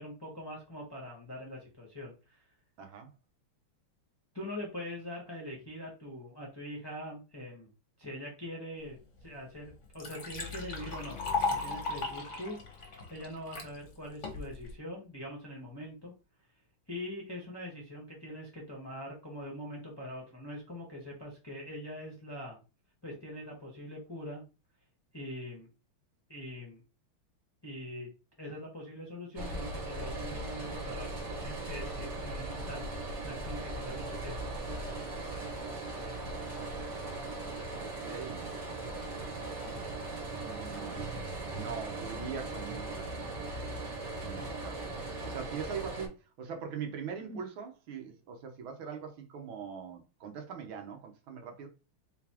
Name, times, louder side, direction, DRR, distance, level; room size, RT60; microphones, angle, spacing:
voice 1, 0.0-2.4 4.3-7.7 8.0-11.2 11.5-12.6 13.1-16.1 16.9-22.6 23.0-24.4 25.1-25.7 26.3-26.8 27.6-28.1 28.4-32.9 33.2-34.4 44.4-44.5 47.1-47.4, left 1 dB, 15° left, 0.9 m, -43 dB
voice 2, 2.8-3.1 37.8-38.5 40.4-43.1 44.2-51.7, right 6 dB, 75° right, 1.7 m, -42 dB
Liquid, 9.2-9.3 9.7-13.7 14.2-14.7, left 3 dB, 45° left, 1.1 m, -36 dB
sound 1, 10.3-14.0, left 7 dB, 70° left, 1.4 m, -48 dB
sound 2, 29.4-46.1, right 2 dB, 55° right, 1.8 m, -38 dB
4.0 x 4.0 x 2.9 m
omnidirectional pair, 2.3 m